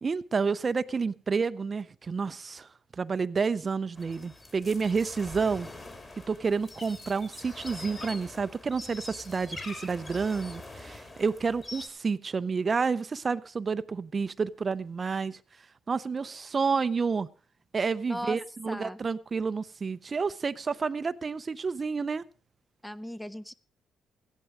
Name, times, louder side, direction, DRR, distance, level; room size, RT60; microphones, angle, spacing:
voice 1, 0.0-2.7 3.0-5.7 6.3-15.4 15.9-17.3 17.7-22.2, right 5 dB, 35° right, 0.5 m, -30 dB
sound 1, 4.0-11.9, left 2 dB, 30° left, 3.0 m, -44 dB
voice 2, 18.1-18.4 18.7-19.0 22.8-23.5, equal, 5° left, 0.6 m, -37 dB
15.5 x 11.0 x 4.8 m
cardioid pair, 90°, 0 cm